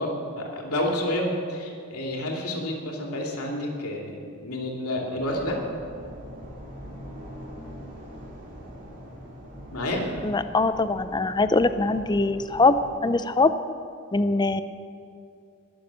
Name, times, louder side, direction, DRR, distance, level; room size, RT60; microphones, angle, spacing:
voice 1, 0.0-4.2 4.4-5.6 9.7-10.0, left 1 dB, 85° left, 0 dB, 2.8 m, -29 dB
sound 1, 5.2-12.9, equal, 40° right, 3.6 m, -43 dB
voice 2, 10.2-13.5 14.1-14.6, left 3 dB, 20° left, 12 dB, 0.5 m, -22 dB
21.5 x 7.1 x 7.6 m, 2.5 s
head